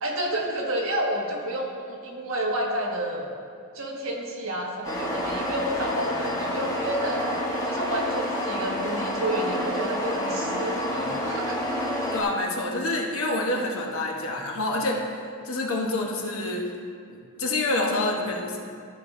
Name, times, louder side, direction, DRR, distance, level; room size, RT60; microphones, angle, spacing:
voice 1, 0.0-3.3 3.7-7.3 7.6-11.6, right 1 dB, 65° right, -1 dB, 1.4 m, -30 dB
sound 1, 4.8-12.2, equal, 15° left, 1.2 m, -28 dB
voice 2, 12.1-15.1 15.4-16.7 17.1-18.6, left 2 dB, 65° left, 0 dB, 1.1 m, -27 dB
13.0 x 5.4 x 3.7 m, 2.3 s
head